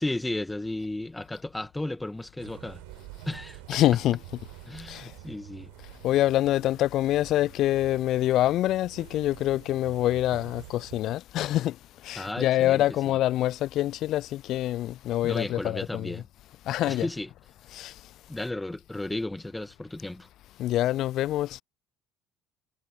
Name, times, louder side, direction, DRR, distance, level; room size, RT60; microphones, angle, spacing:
voice 1, 0.0-2.8 3.3-3.8 4.7-5.7 12.2-12.8 15.2-16.2 16.9-17.3 18.3-20.3, left 1 dB, 10° left, 2.2 m, -34 dB
sound 1, 2.4-11.2, right 36 dB, 70° right, 5.7 m, -48 dB
voice 2, 3.7-4.4 4.9-5.1 6.0-11.8 12.0-16.2 16.7-17.1 17.7-17.9 20.6-21.6, left 14 dB, 55° left, 0.4 m, -26 dB
figure-of-eight pair, 60°, 0 cm